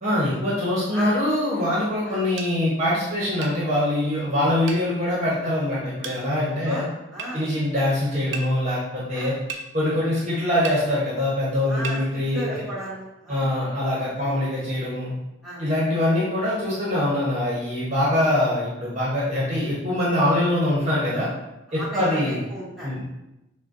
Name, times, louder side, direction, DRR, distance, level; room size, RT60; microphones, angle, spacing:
voice 1, 0.0-6.8 7.3-9.4 9.7-12.5 13.3-15.1 15.6-21.3 21.7-22.4 22.8-23.1, left 1 dB, 35° right, -7 dB, 1.0 m, -23 dB
sound 1, 2.4-2.5 3.4-3.6 4.7-4.9 6.0-6.2 7.2-7.3 8.3-8.5 9.5-9.7 10.6-10.8 11.8-12.0, right 5 dB, 70° right, 0.5 m, -33 dB
voice 2, 6.7-7.4 9.1-9.3 11.7-13.5 15.4-15.6 18.1-18.3 21.7-23.1, equal, ahead, -10 dB, 1.4 m, -35 dB
5.9 x 2.3 x 2.6 m, 0.92 s
head